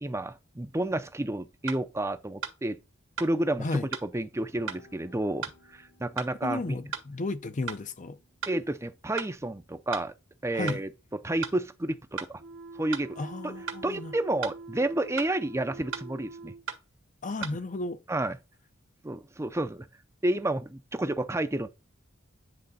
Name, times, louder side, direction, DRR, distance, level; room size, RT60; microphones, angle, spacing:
voice 1, 0.0-2.8 3.2-5.5 5.7-6.8 8.5-10.1 10.4-10.9 11.2-12.4 12.8-13.2 13.4-13.5 13.8-16.5 18.1-18.4 19.0-19.9 20.2-21.7, right 1 dB, 15° right, 0.5 m, -30 dB
sound 1, 1.0-1.1 1.7-1.8 2.4-2.6 3.2-3.3 3.9-4.1 4.7-4.8 5.4-5.6 6.2-6.3 6.9-7.1 7.7-7.8 8.4-8.6 9.2-9.3 9.9-10.1 10.7-10.8 11.4-11.6 12.2-12.3 12.9-13.1 13.7-13.8 14.4-14.6 15.2-15.3 15.9-16.1 16.7-16.8 17.4-17.6, right 6 dB, 85° right, 1.9 m, -35 dB
sound 2, 4.5-11.0, left 2 dB, 85° left, 4.0 m, -64 dB
voice 2, 6.4-8.2 10.5-10.8 13.2-14.1 17.2-18.0, left 2 dB, 40° left, 0.6 m, -33 dB
sound 3, 12.4-16.6, right 3 dB, 55° right, 0.9 m, -45 dB
9.7 x 3.8 x 4.0 m
head